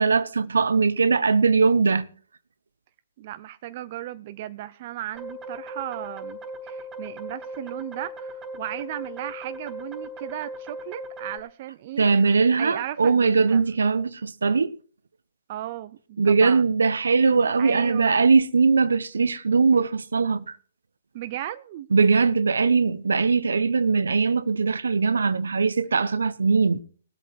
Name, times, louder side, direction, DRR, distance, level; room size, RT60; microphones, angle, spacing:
voice 1, 0.0-2.1 12.0-14.7 16.2-20.6 21.9-26.8, right 4 dB, 75° right, 0.9 m, -20 dB
voice 2, 3.2-12.3 12.6-13.6 15.5-16.8 17.6-18.3 21.1-21.9, right 13 dB, 40° right, 0.6 m, -36 dB
sound 1, 5.1-11.4, right 1 dB, 10° right, 3.5 m, -38 dB
19.0 x 8.0 x 4.6 m
figure-of-eight pair, 135°, 0 cm